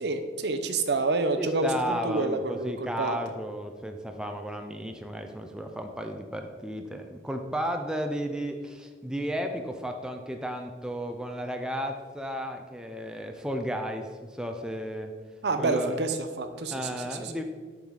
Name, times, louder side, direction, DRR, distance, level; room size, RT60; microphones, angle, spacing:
voice 1, 0.0-3.2 15.4-17.4, right 3 dB, 65° right, 8 dB, 0.6 m, -28 dB
voice 2, 1.4-15.1 15.6-15.9 16.7-17.4, equal, 5° right, 4 dB, 0.4 m, -33 dB
6.8 x 4.0 x 4.7 m, 1.5 s
head